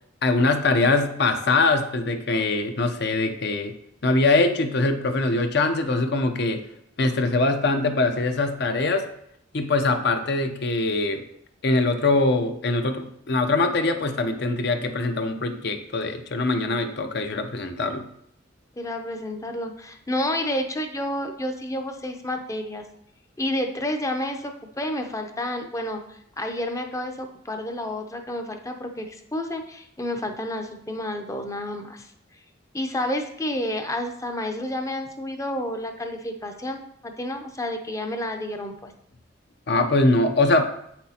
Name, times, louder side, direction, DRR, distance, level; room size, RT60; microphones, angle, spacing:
voice 1, 0.2-3.7 4.0-6.6 7.0-9.1 9.5-11.2 11.6-18.0 39.7-40.7, left 2 dB, 60° left, 7 dB, 0.7 m, -22 dB
voice 2, 18.8-22.8 23.4-24.5 24.8-32.1 32.7-38.8, left 1 dB, 15° left, 5 dB, 0.6 m, -30 dB
8.2 x 5.9 x 2.9 m, 0.73 s
head